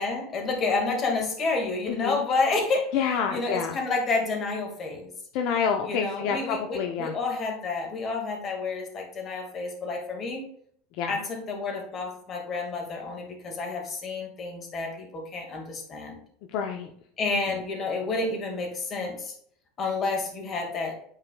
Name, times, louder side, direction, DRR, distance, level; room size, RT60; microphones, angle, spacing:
voice 1, 0.0-2.9 3.3-5.1 5.8-10.4 11.1-16.2 17.2-19.3 19.8-20.9, left 3 dB, 35° left, 2 dB, 1.8 m, -29 dB
voice 2, 1.9-2.2 2.9-3.8 5.3-7.1 11.0-11.1 16.5-16.9, left 7 dB, 60° left, 4 dB, 0.6 m, -28 dB
8.9 x 4.7 x 2.3 m, 0.64 s
supercardioid pair, 120°, 0 cm